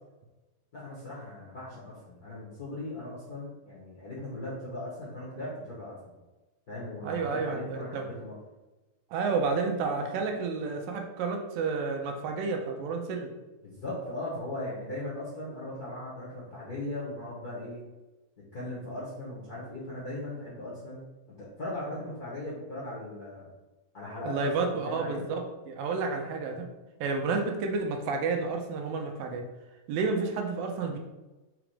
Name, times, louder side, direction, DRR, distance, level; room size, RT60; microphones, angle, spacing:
voice 1, 0.7-6.1 6.7-8.3 13.6-17.8 18.5-21.0 21.4-23.5 23.9-25.3, left 1 dB, 55° left, -7 dB, 1.0 m, -38 dB
voice 2, 7.0-8.0 9.1-13.3 24.2-26.7 27.0-29.5 29.9-31.0, right 4 dB, 80° right, 3 dB, 2.4 m, -30 dB
5.0 x 4.8 x 4.9 m, 1.1 s
omnidirectional pair, 4.1 m